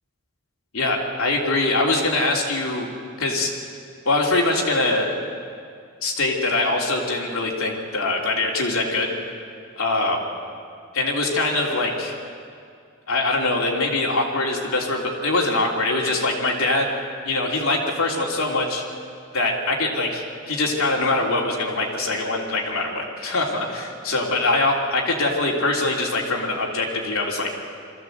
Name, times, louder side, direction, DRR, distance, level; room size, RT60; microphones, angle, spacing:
voice 1, 0.7-2.9 3.2-3.5 4.0-5.1 6.0-9.1 9.8-10.3 10.9-12.1 13.1-16.9 17.2-18.8 19.3-27.5, left 2 dB, 90° left, -1 dB, 3.2 m, -23 dB
23.0 x 15.0 x 8.1 m, 2.3 s
head